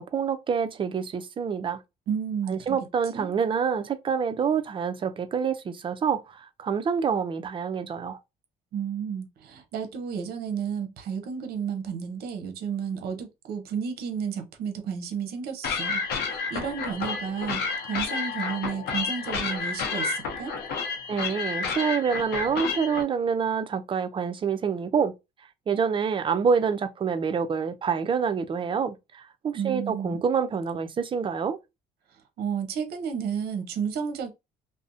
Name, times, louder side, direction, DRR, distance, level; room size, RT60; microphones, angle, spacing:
voice 1, 0.0-1.8 2.5-8.2 21.1-25.1 25.7-31.6, right 6 dB, 30° right, 0.4 m, -27 dB
voice 2, 2.1-2.8 3.1-3.3 8.7-20.5 29.5-30.2 32.1-34.3, right 7 dB, 70° right, 0.6 m, -32 dB
sound 1, 15.6-23.0, left 5 dB, 75° left, 0.7 m, -30 dB
2.5 x 2.0 x 2.5 m
cardioid pair, 110°, 17 cm